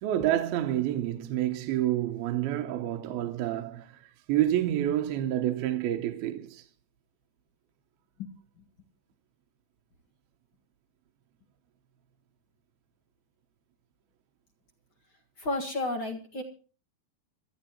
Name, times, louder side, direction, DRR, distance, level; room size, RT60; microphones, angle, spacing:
voice 1, 0.0-3.9 4.3-6.6, right 12 dB, 80° right, 2.7 m, -28 dB
voice 2, 15.4-16.4, left 2 dB, 45° left, 1.8 m, -31 dB
25.5 x 13.0 x 2.9 m
omnidirectional pair, 4.3 m